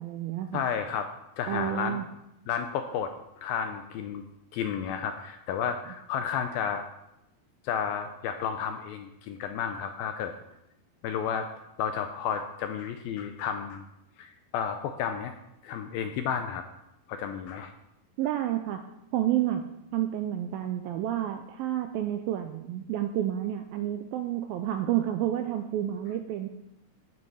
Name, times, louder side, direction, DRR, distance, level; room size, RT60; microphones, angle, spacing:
voice 1, 0.0-0.6 1.5-2.1 18.2-18.8 19.1-19.6 19.9-26.5, right 12 dB, 80° right, 7 dB, 2.1 m, -30 dB
voice 2, 0.5-2.0 2.5-4.2 4.5-6.9 7.6-10.3 11.0-11.5 11.8-13.8 14.2-15.3 15.6-16.6 17.1-17.7, left 7 dB, 85° left, 7 dB, 2.2 m, -32 dB
17.0 x 5.9 x 5.5 m, 0.84 s
omnidirectional pair, 4.8 m